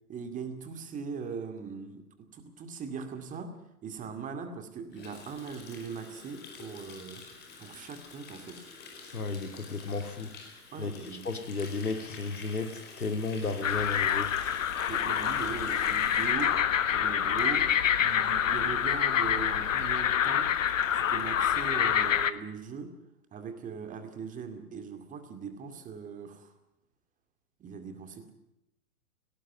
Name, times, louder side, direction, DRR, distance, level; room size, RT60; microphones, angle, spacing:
voice 1, 0.1-3.5 3.8-7.2 7.6-8.7 10.7-11.3 14.9-20.6 20.9-23.0 23.3-26.5 27.6-28.3, right 5 dB, 15° right, 8 dB, 2.3 m, -40 dB
Water tap faucet, 4.9-17.9 18.2-18.5 18.8-19.1 19.4-19.5 19.7-19.8 20.2-20.3 20.5-21.5, left 4 dB, 20° left, 4.9 m, -48 dB
voice 2, 9.1-10.3 10.8-10.9 11.2-14.3, left 3 dB, 75° left, 9 dB, 2.4 m, -33 dB
sound 1, 13.6-22.3, left 9 dB, 55° left, 1.4 m, -27 dB
18.5 x 18.0 x 9.3 m, 0.85 s
figure-of-eight pair, 110°, 45 cm